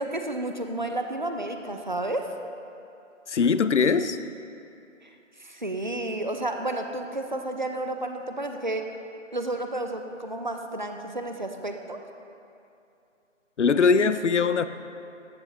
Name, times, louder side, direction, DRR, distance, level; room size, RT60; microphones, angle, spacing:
voice 1, 0.0-2.3 5.0-5.1 5.4-8.8 9.3-12.0, right 2 dB, 40° right, 0.4 m, -31 dB
voice 2, 3.3-4.2 13.6-14.7, left 5 dB, 65° left, 0.5 m, -21 dB
14.0 x 6.9 x 2.9 m
figure-of-eight pair, 160°, 38 cm